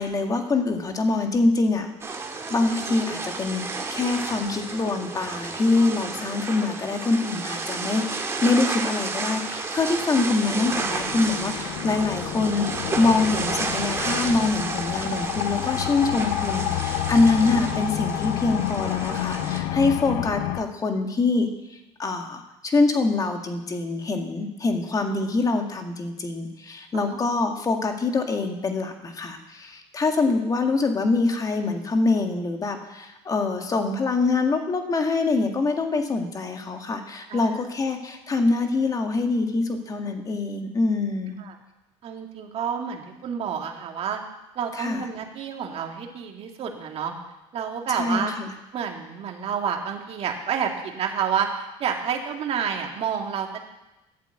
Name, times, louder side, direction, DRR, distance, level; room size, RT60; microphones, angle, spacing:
voice 1, 0.0-2.2 2.5-3.6 3.9-41.4 44.8-45.1 47.9-48.5, left 3 dB, 25° left, 4 dB, 1.8 m, -24 dB
sound 1, 2.0-19.6, right 3 dB, 20° right, 2.0 m, -32 dB
sound 2, 10.0-20.6, left 14 dB, 85° left, 0.7 m, -30 dB
voice 2, 42.0-44.2 44.6-47.1 47.5-48.3 48.7-53.6, right 7 dB, 50° right, 2 dB, 2.2 m, -29 dB
11.5 x 8.3 x 8.1 m, 0.98 s
cardioid pair, 120°, 13 cm